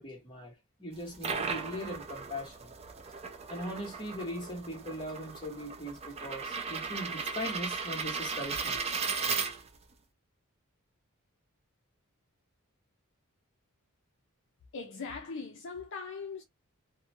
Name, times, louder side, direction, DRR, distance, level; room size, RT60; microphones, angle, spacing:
voice 1, 0.0-2.7 3.5-8.8, equal, 20° left, 1.3 m, -40 dB
sound 1, 0.9-9.9, right 5 dB, 30° right, 0.5 m, -36 dB
voice 2, 14.7-16.4, left 4 dB, 60° left, 0.5 m, -40 dB
2.7 x 2.2 x 2.7 m
head